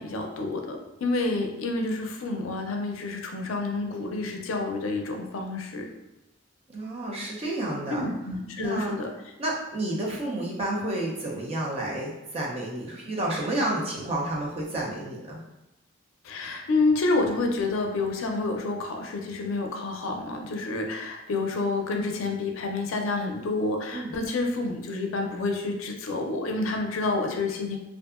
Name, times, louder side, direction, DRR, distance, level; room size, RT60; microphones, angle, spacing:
voice 1, 0.0-5.9 7.9-9.1 16.2-27.8, left 3 dB, 85° left, 3 dB, 0.4 m, -29 dB
voice 2, 6.7-8.1 8.6-8.9 9.4-15.4 23.9-24.1, right 1 dB, 30° right, -3 dB, 0.5 m, -30 dB
2.6 x 2.4 x 2.4 m, 0.97 s
head